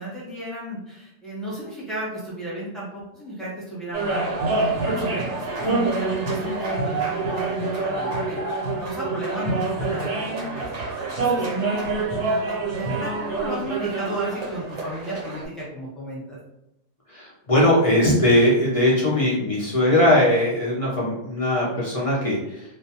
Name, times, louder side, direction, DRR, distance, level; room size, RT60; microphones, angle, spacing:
voice 1, 0.0-16.4, right 1 dB, ahead, -8 dB, 0.7 m, -34 dB
sound 1, 3.9-15.4, right 3 dB, 65° right, 1.0 m, -26 dB
voice 2, 17.1-22.6, left 1 dB, 60° left, -7 dB, 0.3 m, -20 dB
2.3 x 2.1 x 2.7 m, 0.84 s
omnidirectional pair, 1.4 m